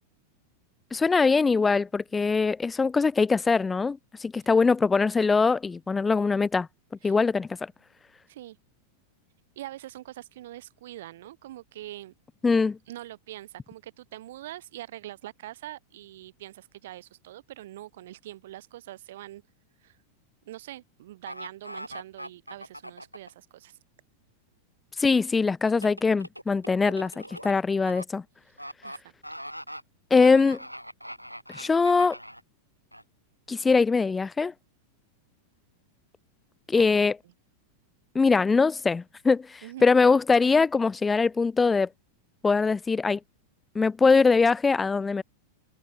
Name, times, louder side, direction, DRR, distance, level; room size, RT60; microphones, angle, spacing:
voice 1, 0.9-6.7 7.0-7.7 12.4-12.8 25.0-28.2 30.1-30.6 31.5-32.2 33.5-34.5 36.7-37.2 38.1-41.9 42.4-43.2 43.7-45.2, left 4 dB, 15° left, 0.5 m, -22 dB
voice 2, 9.6-12.1 12.9-19.4 19.8-20.0 20.5-23.8 28.8-29.1 36.7-37.1 39.6-39.8, right 14 dB, 55° right, 6.2 m, -43 dB
sound 1, 21.3-23.3 25.7-28.0 28.6-29.0 29.2-29.8 30.2-32.4 32.9-33.0, equal, 90° right, 5.8 m, -41 dB
figure-of-eight pair, 90°, 0 cm